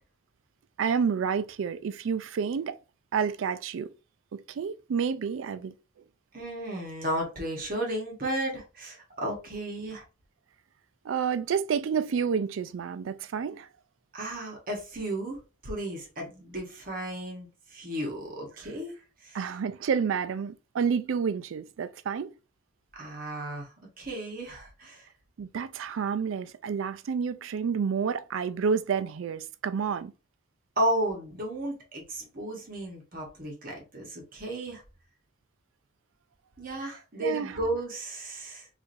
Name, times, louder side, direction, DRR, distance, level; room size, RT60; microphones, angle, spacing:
voice 1, 0.8-2.8 3.1-3.9 4.3-5.7 11.0-13.7 19.3-22.3 25.4-30.1 37.2-37.6, right 6 dB, 70° right, 0.3 m, -29 dB
voice 2, 6.3-10.0 14.1-18.9 19.2-19.4 22.9-25.1 30.8-34.8 36.6-38.7, right 1 dB, 45° right, 1.1 m, -34 dB
4.6 x 2.5 x 2.6 m
head